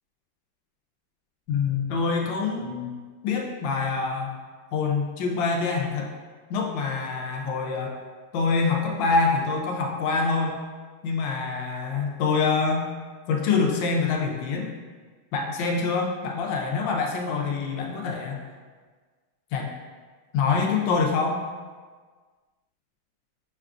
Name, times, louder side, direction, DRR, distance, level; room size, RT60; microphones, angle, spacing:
voice 1, 1.5-2.9 3.2-4.4 4.7-6.1 6.5-8.0 8.3-10.6 11.0-12.9 13.3-14.8 15.3-18.4 19.5-19.7 20.3-21.4, left 4 dB, 75° left, 0 dB, 1.2 m, -25 dB
6.5 x 2.3 x 2.4 m, 1.5 s
omnidirectional pair, 2.3 m